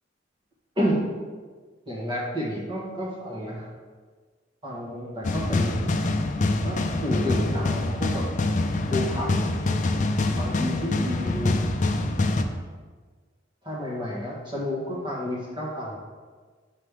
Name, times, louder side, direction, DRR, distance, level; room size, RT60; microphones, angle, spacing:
voice 1, 1.8-3.7 4.6-5.9 6.6-8.6 8.9-9.3 10.4-11.6 13.6-16.0, equal, 25° right, -4 dB, 1.5 m, -30 dB
sound 1, 5.2-12.4, left 2 dB, 40° left, 0.5 m, -25 dB
6.3 x 4.1 x 5.0 m, 1.5 s
head